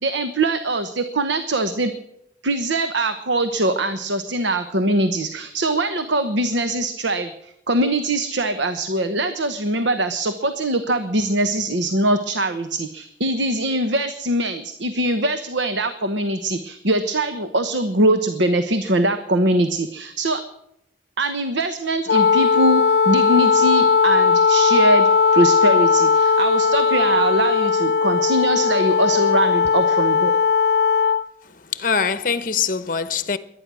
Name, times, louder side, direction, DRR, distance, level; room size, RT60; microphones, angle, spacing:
voice 1, 0.0-1.9 2.4-20.4 21.2-30.3, right 1 dB, 80° right, 1.1 m, -22 dB
Wind instrument woodwind instrument, 22.1-31.3, left 5 dB, 70° left, 0.7 m, -17 dB
voice 2, 31.4-33.4, left 6 dB, 45° left, 0.9 m, -24 dB
22.5 x 9.9 x 6.2 m
head